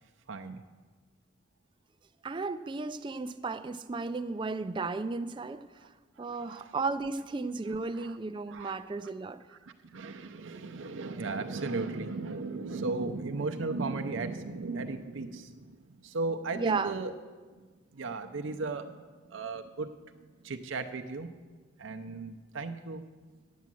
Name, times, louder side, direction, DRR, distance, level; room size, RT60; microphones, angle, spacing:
voice 1, 0.3-0.6 6.2-6.7 8.0-8.2 8.5-8.8 9.5-17.1 17.9-19.0 19.3-19.9 20.4-21.3 21.8-23.0, right 3 dB, 65° right, 6 dB, 0.6 m, -36 dB
voice 2, 2.2-5.6 6.2-9.4 16.6-17.0, right 3 dB, 25° right, 10 dB, 0.3 m, -34 dB
9.4 x 8.3 x 7.5 m, 1.4 s
head